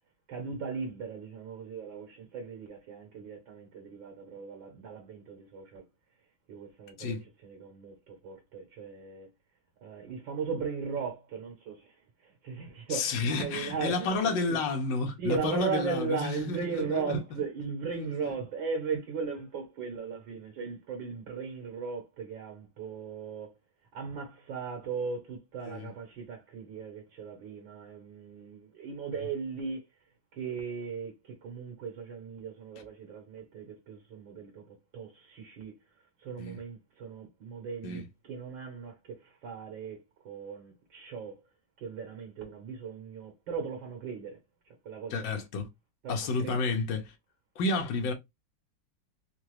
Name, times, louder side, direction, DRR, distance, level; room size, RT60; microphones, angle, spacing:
voice 1, 0.3-5.8 6.5-7.2 7.4-9.3 9.8-12.0 12.2-14.6 15.2-23.6 23.9-29.8 30.3-35.7 36.2-41.4 41.8-44.4 44.9-45.4 46.0-46.7, right 5 dB, 70° right, 1.8 m, -37 dB
voice 2, 12.9-17.2 18.0-18.3 25.6-25.9 36.4-36.6 37.8-38.0 45.1-45.7 46.1-47.1 47.6-48.1, left 3 dB, 70° left, 1.7 m, -31 dB
4.4 x 2.3 x 3.1 m
omnidirectional pair, 2.2 m